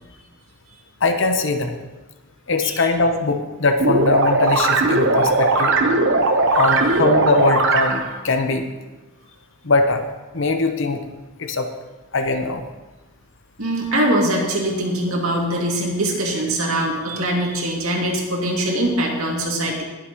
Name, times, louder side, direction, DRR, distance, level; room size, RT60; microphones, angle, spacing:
voice 1, 1.0-1.7 2.5-5.8 6.5-8.7 9.6-10.1 10.3-11.0 11.4-11.7 12.1-12.6, left 3 dB, 55° left, 6 dB, 0.9 m, -21 dB
sound 1, 3.8-8.2, right 2 dB, 55° right, 0.9 m, -18 dB
voice 2, 13.6-19.8, right 1 dB, 75° right, -1 dB, 2.4 m, -22 dB
20.0 x 7.7 x 3.1 m, 1.2 s
head